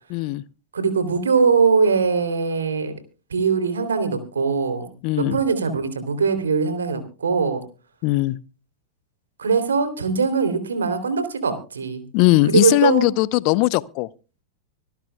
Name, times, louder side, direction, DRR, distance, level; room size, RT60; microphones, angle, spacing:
voice 1, 0.1-0.4 5.0-5.4 8.0-8.4 12.1-14.1, left 19 dB, 45° left, 0.6 m, -19 dB
voice 2, 0.7-2.9 3.3-4.9 5.2-7.6 9.4-12.0 12.5-13.0, right 5 dB, 70° right, 3.0 m, -21 dB
25.5 x 13.0 x 2.3 m
figure-of-eight pair, 90°, 0 cm